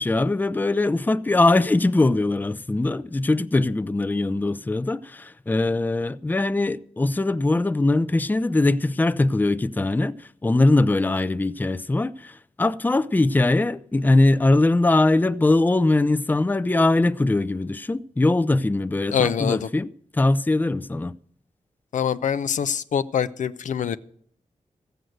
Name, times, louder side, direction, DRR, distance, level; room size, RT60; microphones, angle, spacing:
voice 1, 0.0-21.1, left 2 dB, 15° left, 0.4 m, -21 dB
voice 2, 19.1-19.6 21.9-24.0, left 8 dB, 85° left, 0.5 m, -24 dB
15.0 x 7.9 x 7.8 m
cardioid pair, 70°, 13 cm